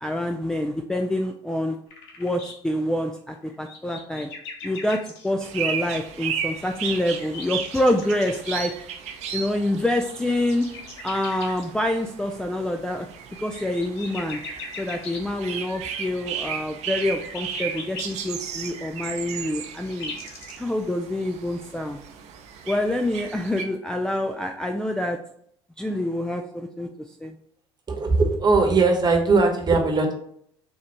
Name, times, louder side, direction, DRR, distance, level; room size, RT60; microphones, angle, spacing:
voice 1, 0.0-1.8 2.2-4.3 4.6-8.7 9.3-10.7 11.0-13.1 13.4-14.4 14.8-20.2 20.6-22.0 22.7-25.2 25.8-27.4, left 1 dB, 5° left, 4 dB, 0.3 m, -26 dB
sound 1, 1.9-2.5 3.3-5.3 6.5-8.5 10.0-11.7 13.3-15.2 16.9-18.1 19.3-20.6, left 4 dB, 70° left, 0.8 m, -39 dB
sound 2, 5.4-23.6, right 7 dB, 55° right, 0.6 m, -35 dB
voice 2, 27.9-30.1, right 3 dB, 30° right, 2 dB, 1.0 m, -19 dB
4.3 x 2.5 x 4.2 m, 0.67 s
hypercardioid pair, 65°, 14 cm